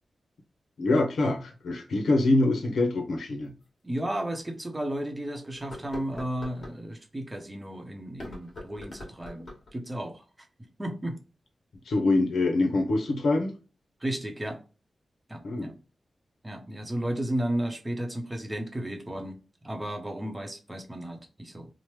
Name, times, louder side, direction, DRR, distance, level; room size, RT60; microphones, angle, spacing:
voice 1, 0.8-3.5 11.9-13.5 15.4-15.7, left 2 dB, 80° left, 0.7 m, -25 dB
sound 1, 3.6-3.7 4.3-4.4 5.6-6.8 8.1-9.7, left 1 dB, 50° left, 1.2 m, -43 dB
voice 2, 3.8-10.2 10.8-11.2 14.0-14.6 15.3-15.8 16.4-19.4 19.6-21.7, right 1 dB, 20° right, 0.8 m, -33 dB
3.0 x 2.1 x 3.1 m
cardioid pair, 60°, 0 cm